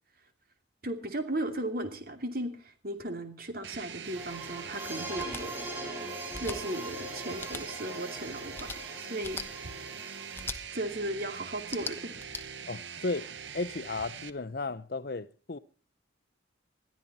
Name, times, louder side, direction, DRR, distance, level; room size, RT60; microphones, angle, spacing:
voice 1, 0.8-5.5 6.4-8.7 9.0-9.4 10.7-12.2, right 1 dB, 50° right, 2.7 m, -36 dB
sound 1, 3.6-14.3, right 7 dB, 70° right, 0.9 m, -43 dB
sound 2, 4.1-10.5, right 1 dB, 10° right, 4.7 m, -41 dB
sound 3, 5.1-5.4 6.3-6.6 7.4-7.6 8.5-8.8 9.2-9.5 10.3-10.6 11.6-12.4, left 3 dB, 10° left, 1.1 m, -39 dB
voice 2, 12.7-15.6, left 3 dB, 55° left, 0.7 m, -35 dB
21.5 x 13.5 x 4.2 m
head